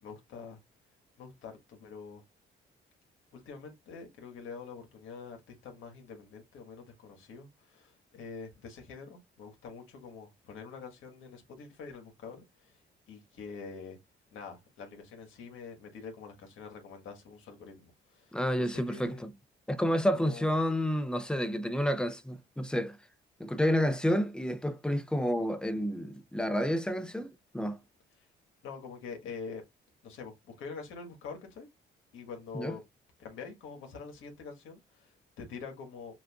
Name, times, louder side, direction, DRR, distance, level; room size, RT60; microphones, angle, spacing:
voice 1, 0.0-0.6 1.2-2.2 3.3-12.8 13.1-14.0 14.3-19.2 20.2-20.5 28.6-29.6 30.0-31.7 32.1-32.8 33.2-36.2, left 5 dB, 80° left, 1.5 m, -45 dB
voice 2, 18.3-19.3 19.7-23.0 23.4-27.8 32.5-32.8, equal, 5° left, 0.6 m, -30 dB
6.0 x 2.6 x 2.3 m
cardioid pair, 90°, 20 cm